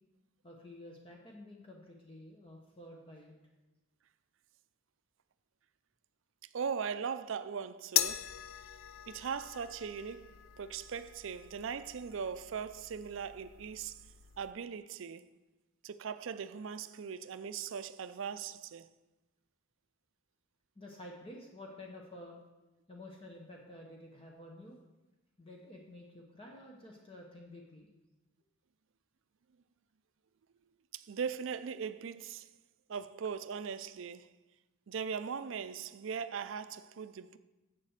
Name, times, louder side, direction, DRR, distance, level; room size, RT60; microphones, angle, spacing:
voice 1, 0.4-3.3 20.8-22.4 22.9-24.8 25.4-27.9, left 1 dB, 25° left, 0.9 m, -51 dB
voice 2, 6.5-8.3 9.1-14.0 14.4-15.3 15.8-18.9 30.9-32.5 32.9-34.3 34.9-37.4, right 6 dB, 65° right, 0.4 m, -39 dB
sound 1, 8.0-14.5, left 12 dB, 70° left, 0.4 m, -40 dB
7.6 x 7.4 x 6.4 m
head